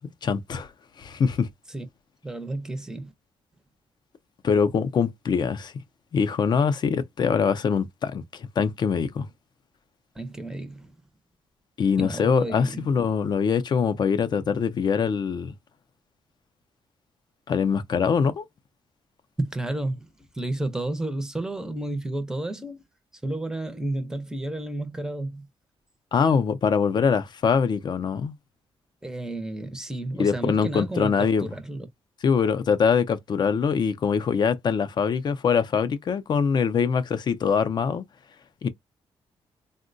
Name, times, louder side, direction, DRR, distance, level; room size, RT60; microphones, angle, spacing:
voice 1, 0.2-0.7 1.0-1.5 4.4-5.7 6.1-9.3 11.8-15.5 17.5-18.5 26.1-28.3 30.2-31.5 32.2-38.0 38.6-38.7, left 6 dB, 45° left, 0.4 m, -23 dB
voice 2, 2.2-3.1 10.2-11.0 12.0-12.9 19.4-22.8 23.2-25.5 29.0-31.9, right 2 dB, 5° right, 0.5 m, -31 dB
3.6 x 2.1 x 2.5 m
wide cardioid pair, 170°, 11 cm